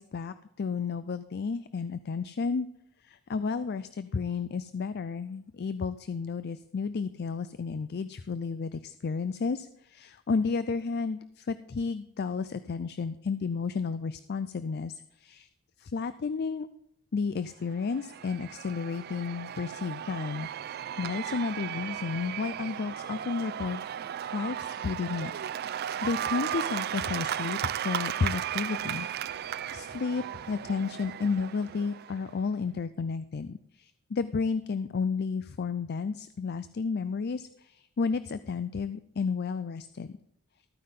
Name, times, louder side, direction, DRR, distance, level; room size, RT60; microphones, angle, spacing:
voice 1, 0.0-2.7 3.0-15.5 15.8-16.7 17.1-23.8 24.3-25.3 25.7-27.6 27.8-29.1 29.7-40.2, left 5 dB, 50° left, 13 dB, 0.4 m, -32 dB
Cheering / Applause / Crowd, 17.7-32.4, right 10 dB, 45° right, 0.3 m, -35 dB
14.0 x 9.5 x 3.7 m, 0.75 s
head